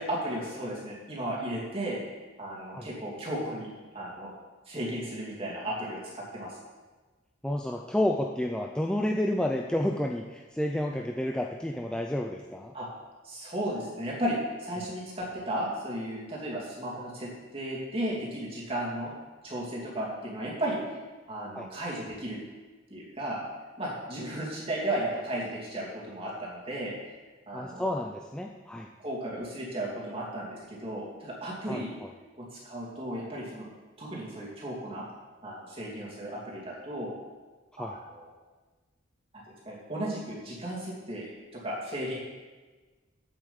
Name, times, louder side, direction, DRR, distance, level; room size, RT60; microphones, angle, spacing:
voice 1, 0.0-2.0 2.4-3.7 3.9-4.3 4.7-6.6 12.7-12.9 13.2-19.1 19.4-20.8 21.3-22.4 22.9-23.4 23.8-27.0 27.5-27.9 29.0-31.9 32.4-33.7 34.0-35.0 35.4-37.1 37.8-38.3 39.6-42.2, right 1 dB, 30° right, -5 dB, 2.7 m, -34 dB
voice 2, 7.4-12.7 21.6-21.7 27.5-28.9 31.7-32.1 37.8-37.9, left 1 dB, 5° left, 1 dB, 0.4 m, -30 dB
8.0 x 7.5 x 7.1 m, 1.3 s
head